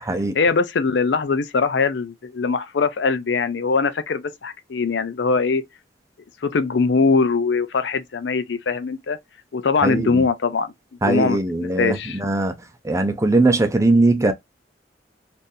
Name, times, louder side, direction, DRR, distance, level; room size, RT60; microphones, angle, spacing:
voice 1, 0.3-5.6 6.4-9.2 9.5-10.7 11.0-12.2, left 4 dB, 70° left, 0.5 m, -21 dB
voice 2, 9.8-10.2 11.0-12.5 12.8-14.3, right 2 dB, 15° right, 0.6 m, -20 dB
3.8 x 2.6 x 2.6 m
head